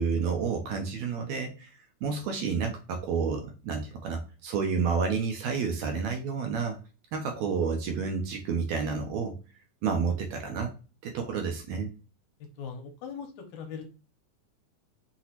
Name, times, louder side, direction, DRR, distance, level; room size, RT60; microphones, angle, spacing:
voice 1, 0.0-1.7 2.0-6.8 7.1-9.3 9.8-10.7 11.0-11.9, right 5 dB, 75° right, 4 dB, 1.8 m, -30 dB
voice 2, 12.6-13.9, left 6 dB, 75° left, 3 dB, 2.0 m, -40 dB
5.9 x 2.9 x 2.9 m, 0.33 s
omnidirectional pair, 3.6 m